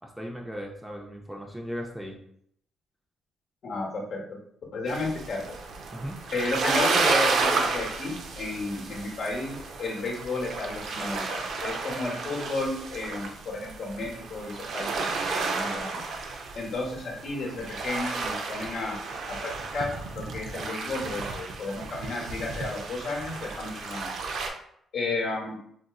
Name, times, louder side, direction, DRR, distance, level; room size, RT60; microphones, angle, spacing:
voice 1, 0.0-2.2 5.9-6.2, equal, 5° right, 0 dB, 0.5 m, -37 dB
voice 2, 3.6-4.4 4.7-5.6 6.3-16.0 16.5-19.0 19.3-24.1 24.9-25.6, left 2 dB, 60° left, -1 dB, 1.0 m, -33 dB
sound 1, 4.9-24.5, right 4 dB, 70° right, 0.5 m, -32 dB
3.7 x 2.6 x 2.3 m, 0.69 s
cardioid pair, 90°, 0 cm